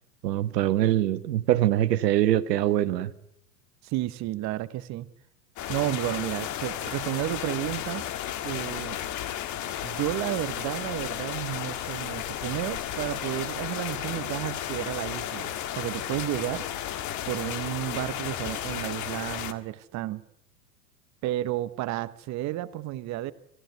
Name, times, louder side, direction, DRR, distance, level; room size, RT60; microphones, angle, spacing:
voice 1, 0.2-3.1, right 13 dB, 70° right, 12 dB, 1.6 m, -23 dB
voice 2, 3.8-5.1 5.7-8.0 8.4-9.0 9.8-16.6 17.3-20.2 21.2-23.3, right 15 dB, 35° right, 15 dB, 1.0 m, -32 dB
sound 1, 5.6-19.5, left 11 dB, 35° left, 1.8 m, -33 dB
27.5 x 15.0 x 9.4 m, 0.78 s
hypercardioid pair, 115°, 50 cm